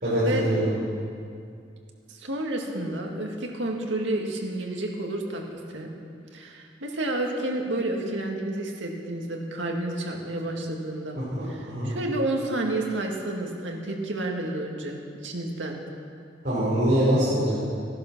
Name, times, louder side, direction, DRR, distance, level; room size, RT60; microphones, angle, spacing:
voice 1, 0.0-0.6 11.1-11.2 11.6-11.9 16.4-17.5, equal, 45° right, -11 dB, 4.6 m, -23 dB
voice 2, 2.1-5.9 6.3-11.2 11.4-15.8, right 1 dB, 80° right, 1 dB, 2.0 m, -30 dB
15.5 x 11.0 x 6.1 m, 2.3 s
head